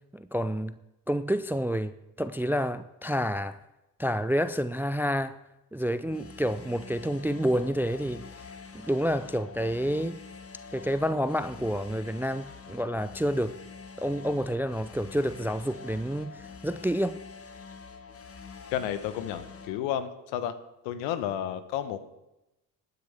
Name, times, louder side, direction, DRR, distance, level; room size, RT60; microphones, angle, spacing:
voice 1, 0.1-0.8 1.1-3.6 4.0-5.4 5.7-8.3 8.7-10.2 10.7-13.5 14.0-17.2, equal, 5° right, 0.4 m, -29 dB
sound 1, 6.0-19.8, left 5 dB, 30° left, 1.2 m, -46 dB
voice 2, 18.7-20.5 20.8-22.0, left 10 dB, 75° left, 1.1 m, -31 dB
17.0 x 9.6 x 3.4 m
hypercardioid pair, 50°, 46 cm